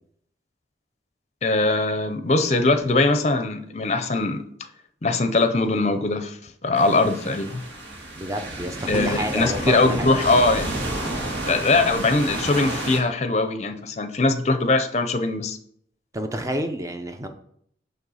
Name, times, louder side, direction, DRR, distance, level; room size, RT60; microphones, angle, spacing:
voice 1, 1.4-4.4 5.0-6.4 6.6-7.6 8.9-10.7 11.4-15.6, left 3 dB, 35° left, 8 dB, 0.6 m, -21 dB
sound 1, 6.8-13.0, right 1 dB, 65° right, 2.2 m, -31 dB
voice 2, 8.1-10.2 16.1-17.3, right 1 dB, 15° right, 6 dB, 0.7 m, -29 dB
8.9 x 3.2 x 6.3 m, 0.67 s
head